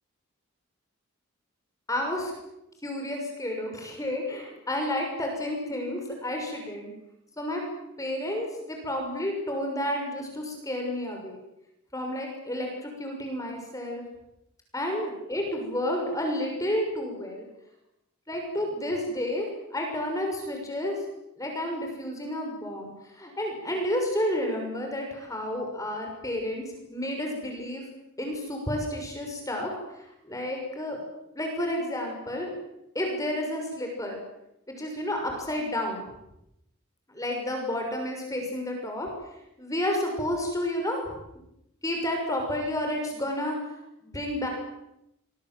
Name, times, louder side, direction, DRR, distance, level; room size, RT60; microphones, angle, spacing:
voice 1, 1.9-2.3 2.8-6.9 7.4-7.6 8.0-11.4 11.9-14.0 14.7-17.4 18.3-19.5 19.7-20.9 21.4-22.9 23.1-26.6 26.9-27.8 28.2-29.7 30.0-31.0 31.3-32.5 32.9-34.2 34.7-36.0 37.1-39.1 39.6-41.0 41.8-43.6 44.0-44.5, left 1 dB, 15° left, 2 dB, 6.2 m, -31 dB
27.0 x 24.0 x 7.8 m, 0.84 s
head